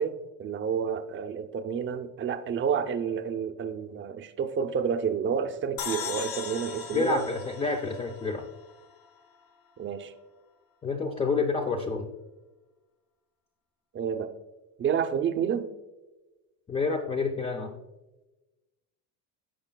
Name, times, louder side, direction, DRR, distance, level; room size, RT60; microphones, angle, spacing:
voice 1, 0.0-7.2 9.8-10.1 13.9-14.3 14.8-15.7, right 7 dB, 30° right, 8 dB, 0.6 m, -29 dB
sound 1, 5.8-9.1, left 6 dB, 65° left, 1.1 m, -38 dB
voice 2, 6.9-8.5 10.8-12.1 16.7-17.8, left 4 dB, 15° left, 4 dB, 0.4 m, -28 dB
14.5 x 5.0 x 2.2 m, 1.1 s
cardioid pair, 120°, 39 cm